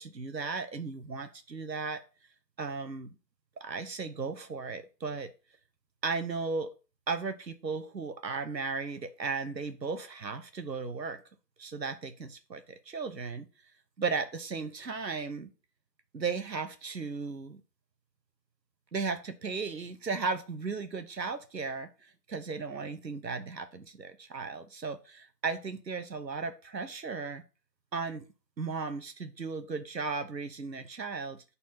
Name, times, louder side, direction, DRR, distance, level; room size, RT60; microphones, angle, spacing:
voice 1, 0.0-2.0 2.6-3.1 3.6-5.3 6.0-6.7 7.1-11.2 11.6-13.5 14.0-15.5 16.1-17.6 18.9-27.4 27.9-28.3 28.6-31.4, right 4 dB, 80° right, 10 dB, 1.0 m, -36 dB
9.1 x 4.2 x 2.8 m, 0.32 s
figure-of-eight pair, 175°, 50 cm